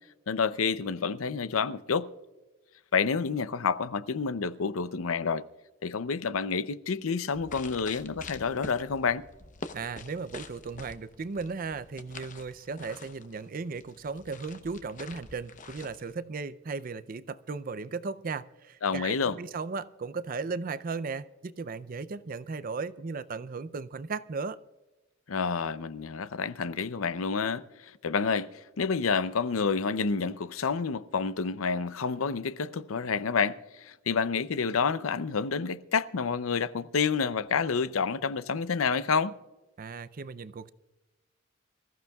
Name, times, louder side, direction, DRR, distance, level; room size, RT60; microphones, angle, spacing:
voice 1, 0.3-2.1 2.9-5.4 5.8-9.2 18.8-19.4 25.3-28.5 28.8-39.3, left 5 dB, 80° left, 0.6 m, -29 dB
sound 1, 7.3-16.1, left 4 dB, 40° left, 0.8 m, -46 dB
voice 2, 9.7-24.6 39.8-40.7, right 4 dB, 40° right, 0.5 m, -36 dB
25.5 x 14.5 x 2.3 m
head